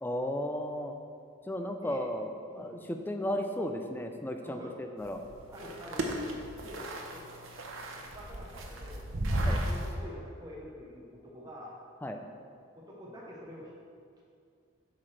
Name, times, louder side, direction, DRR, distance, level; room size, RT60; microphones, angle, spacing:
voice 1, 0.0-0.9 1.5-2.3 2.6-5.2 9.4-9.6 12.0-12.2, left 1 dB, 10° left, 5 dB, 0.4 m, -34 dB
voice 2, 4.4-4.7 5.5-6.2 6.6-7.4 7.9-11.8 12.7-13.7 14.2-14.3, left 1 dB, 20° right, -3 dB, 0.9 m, -47 dB
sound 1, 5.0-9.9, right 1 dB, 85° right, 0.8 m, -34 dB
8.4 x 5.8 x 3.3 m, 2.4 s
head